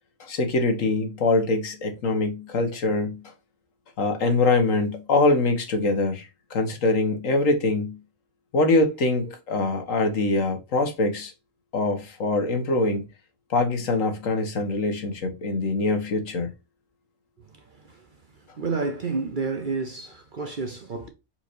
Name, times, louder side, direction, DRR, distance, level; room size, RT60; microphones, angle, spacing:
voice 1, 0.2-3.3 4.0-8.0 8.5-11.3 11.7-13.1 13.5-16.5, left 2 dB, 70° left, 1.6 m, -23 dB
voice 2, 17.4-21.1, right 4 dB, 50° right, 0.7 m, -31 dB
4.6 x 4.4 x 2.6 m
omnidirectional pair, 1.4 m